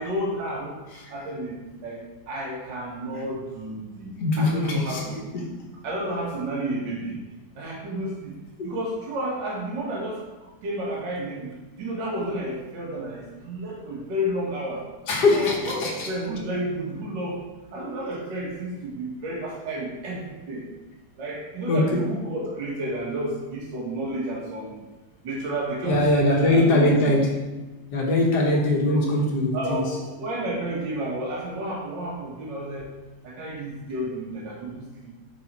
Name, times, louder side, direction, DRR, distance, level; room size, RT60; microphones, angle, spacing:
voice 1, 0.0-0.8 1.1-2.0 2.3-5.2 5.8-7.2 7.6-8.4 8.6-14.9 15.3-17.4 17.7-20.6 21.2-24.8 25.2-26.9 28.9-29.1 29.5-32.9 33.2-35.1, right 1 dB, 60° right, -4 dB, 2.0 m, -31 dB
voice 2, 4.2-5.1 5.3-5.5 8.6-8.8 15.1-16.1 21.7-22.1 25.8-27.4 27.9-29.9, left 2 dB, 55° left, -1 dB, 1.6 m, -22 dB
5.9 x 4.7 x 4.2 m, 1.2 s
omnidirectional pair, 2.2 m